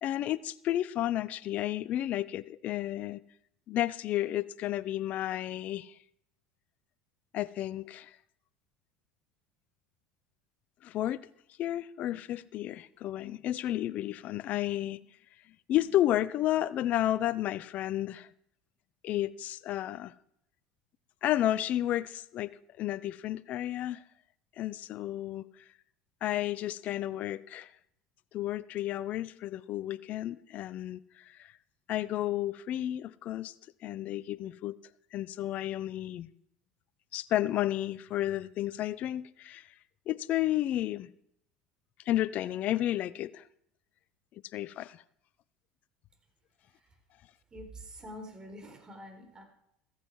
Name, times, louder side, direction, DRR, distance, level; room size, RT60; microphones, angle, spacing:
voice 1, 0.0-3.2 3.7-5.9 7.3-8.2 10.8-11.2 11.6-15.0 15.7-18.3 19.0-20.1 21.2-24.0 24.6-25.5 26.2-27.7 28.3-31.5 31.9-33.5 33.8-34.8 35.1-36.3 37.1-39.7 40.1-41.1 42.1-43.4 44.5-45.0, left 13 dB, 55° left, 0.7 m, -32 dB
voice 2, 47.5-49.4, equal, 25° right, 4.3 m, -46 dB
15.0 x 14.5 x 4.8 m
supercardioid pair, 95°, 3 cm